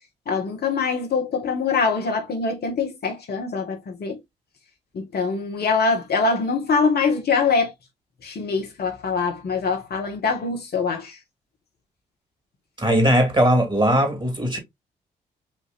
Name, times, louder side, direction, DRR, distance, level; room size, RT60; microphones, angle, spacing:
voice 1, 0.3-4.2 4.9-7.7 8.2-11.2, left 4 dB, 55° left, 1.3 m, -23 dB
voice 2, 12.8-14.6, equal, 25° right, 2.5 m, -19 dB
5.6 x 2.8 x 2.4 m
hypercardioid pair, 40°, 20 cm